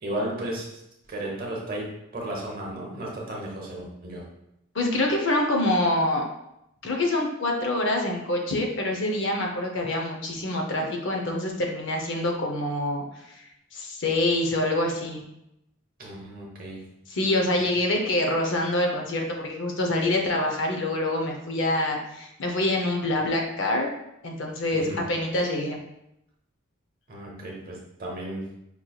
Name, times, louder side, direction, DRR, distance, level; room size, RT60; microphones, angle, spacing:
voice 1, 0.0-0.7 1.1-4.2 16.0-16.8 24.7-25.0 27.1-28.5, right 1 dB, 40° right, -2 dB, 1.0 m, -34 dB
voice 2, 4.7-6.2 6.8-13.0 13.3-13.4 13.7-15.2 17.1-23.9 24.2-25.8, left 1 dB, 55° left, 2 dB, 0.6 m, -26 dB
5.3 x 3.1 x 2.3 m, 0.83 s
head